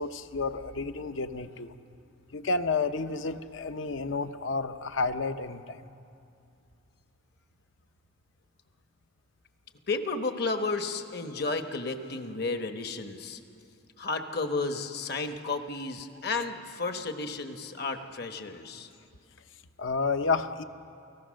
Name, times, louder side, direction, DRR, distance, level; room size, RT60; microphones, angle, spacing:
voice 1, 0.0-1.8 2.3-5.8 19.8-20.6, left 4 dB, 70° left, 10 dB, 0.8 m, -30 dB
voice 2, 9.9-13.4 14.0-18.9, left 3 dB, 50° left, 7 dB, 1.2 m, -32 dB
29.5 x 17.0 x 6.4 m, 2.5 s
head